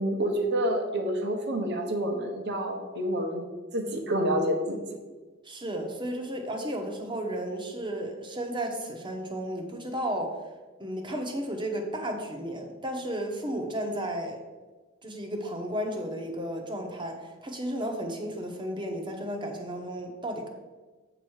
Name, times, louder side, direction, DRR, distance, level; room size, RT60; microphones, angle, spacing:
voice 1, 0.0-3.4 3.7-4.8, right 1 dB, 55° right, 3 dB, 1.1 m, -28 dB
voice 2, 5.4-10.3 10.8-14.4 15.0-20.5, right 1 dB, 25° right, 3 dB, 1.0 m, -33 dB
8.1 x 3.1 x 6.3 m, 1.3 s
head